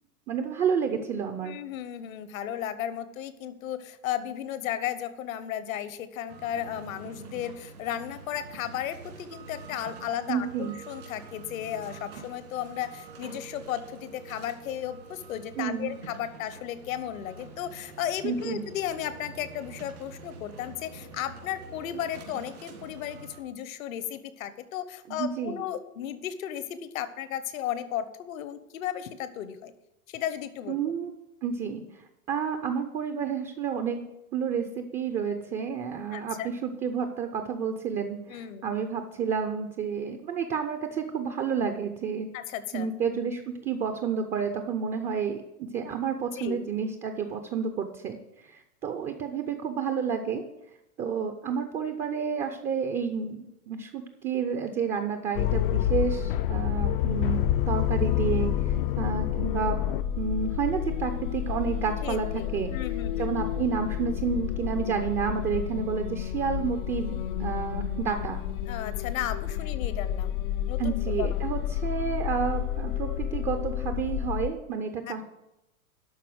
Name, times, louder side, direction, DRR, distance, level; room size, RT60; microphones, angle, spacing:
voice 1, 0.3-1.6 10.3-10.7 15.6-15.9 18.2-18.6 25.1-25.6 30.7-31.1 31.4-32.0 32.3-36.4 36.6-42.3 42.7-50.4 51.0-57.4 57.7-59.8 60.2-62.7 63.2-68.4 70.8-75.2, right 6 dB, 15° right, 7 dB, 0.5 m, -30 dB
voice 2, 1.4-29.7 30.1-30.8 36.1-36.5 38.3-38.7 42.3-42.9 46.3-46.6 62.0-63.3 68.7-70.4 70.7-71.4 75.1-75.2, left 10 dB, 65° left, 13 dB, 1.1 m, -35 dB
sound 1, 6.3-23.4, right 4 dB, 80° right, 3.2 m, -46 dB
sound 2, 55.4-74.5, left 11 dB, 40° left, 0.4 m, -29 dB
12.0 x 4.2 x 7.8 m, 0.94 s
hypercardioid pair, 125°, 44 cm